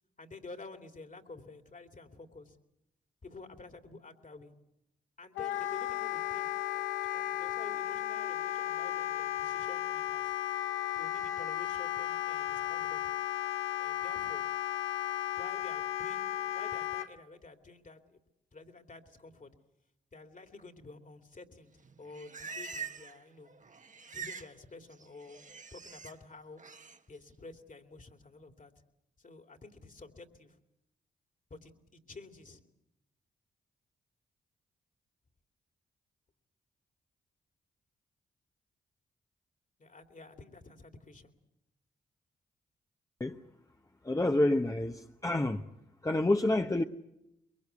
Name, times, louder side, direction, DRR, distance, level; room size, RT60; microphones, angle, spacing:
voice 1, 0.2-2.6 3.2-4.5 5.2-10.3 10.9-13.1 13.7-14.5 15.3-18.2 18.5-19.5 20.1-21.7 22.0-23.5 24.1-26.6 27.1-28.7 29.2-30.6 31.5-32.6 39.8-41.3, left 3 dB, 45° left, 2.8 m, -50 dB
Wind instrument woodwind instrument, 5.4-17.1, left 12 dB, 80° left, 0.9 m, -34 dB
Livestock farm animals working animals, 21.8-23.2 23.5-24.5 24.8-26.1 26.6-27.0, right 5 dB, 40° right, 1.3 m, -44 dB
voice 2, 44.0-45.6 46.0-46.8, left 1 dB, 15° left, 1.1 m, -28 dB
23.5 x 22.5 x 8.2 m
supercardioid pair, 45°, 19 cm